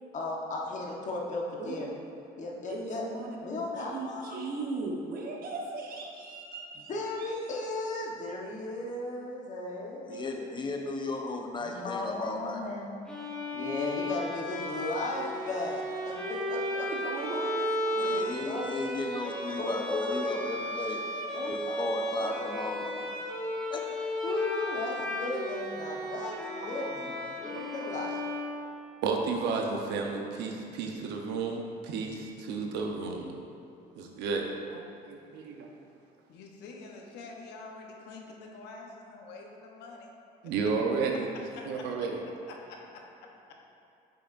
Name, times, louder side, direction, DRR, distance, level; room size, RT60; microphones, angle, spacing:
voice 1, 0.1-1.9 2.4-3.0 3.4-4.4 6.9-10.9 11.6-12.9 13.5-16.9 18.0-18.7 19.6-20.3 21.3-23.0 24.2-27.1 27.4-28.2, left 2 dB, 45° left, -2 dB, 1.2 m, -36 dB
voice 2, 2.7-3.3 3.7-6.9 7.2-7.3 16.9-18.8 19.5-19.8 26.6-26.7 27.5-27.6, right 3 dB, 60° right, -1 dB, 1.1 m, -38 dB
voice 3, 10.0-12.6 17.9-21.0 21.5-22.9 23.7-23.8, left 2 dB, 25° left, 2 dB, 0.8 m, -35 dB
Bowed string instrument, 13.1-29.2, left 1 dB, 5° left, 1.1 m, -34 dB
voice 4, 29.0-33.3 34.0-34.4 34.7-35.7 40.4-41.3 41.6-42.2, right 4 dB, 85° right, 1 dB, 0.8 m, -32 dB
voice 5, 36.3-40.1 41.6-41.7 42.7-43.0, left 3 dB, 80° left, 0 dB, 1.0 m, -46 dB
8.6 x 5.7 x 2.6 m, 2.7 s
cardioid pair, 110°, 17 cm